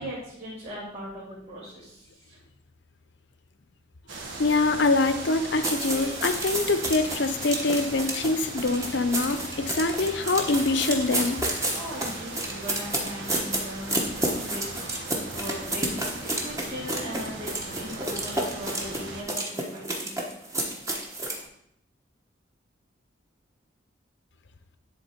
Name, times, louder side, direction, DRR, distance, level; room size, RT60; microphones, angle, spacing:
voice 1, 0.0-2.4 11.7-14.9 15.3-20.2, equal, 35° right, -11 dB, 3.0 m, -39 dB
sound 1, 4.1-19.2, right 2 dB, 75° right, 1.4 m, -39 dB
voice 2, 4.4-11.5, left 3 dB, 60° left, 9 dB, 0.7 m, -24 dB
sound 2, 5.6-21.4, right 1 dB, 15° right, 1.0 m, -31 dB
10.5 x 3.6 x 4.4 m, 0.72 s
head